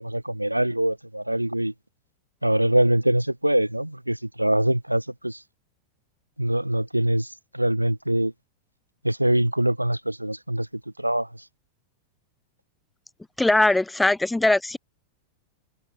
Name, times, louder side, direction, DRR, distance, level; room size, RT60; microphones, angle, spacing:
voice 1, 0.0-1.7 2.4-5.4 6.4-8.3 9.0-10.7 11.0-11.3, right 1 dB, 85° right, 1.4 m, -23 dB
voice 2, 13.4-14.8, left 2 dB, 5° left, 0.5 m, -20 dB
figure-of-eight pair, 90°, 0 cm